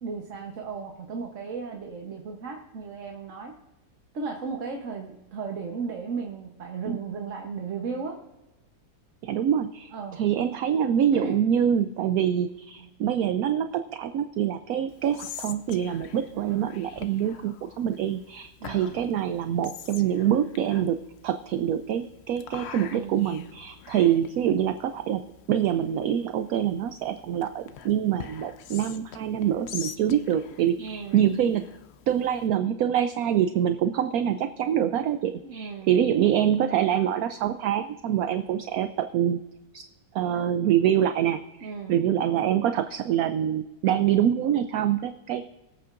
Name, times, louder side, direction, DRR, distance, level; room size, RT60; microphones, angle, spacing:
voice 1, 0.0-3.6 4.1-8.2 9.9-10.2 11.1-11.4 12.8-12.9 16.3-16.8 18.6-19.0 22.8-23.5 30.8-31.4 35.4-36.1 41.6-42.1, right 5 dB, 50° right, 2 dB, 1.3 m, -35 dB
voice 2, 9.2-21.0 21.2-25.2 25.5-31.6 32.1-39.4 39.7-39.9 40.1-45.5, right 10 dB, 70° right, 10 dB, 0.9 m, -25 dB
Whispering, 14.9-32.5, left 7 dB, 65° left, 0.6 m, -45 dB
23.0 x 8.5 x 2.5 m, 1.0 s
omnidirectional pair, 1.8 m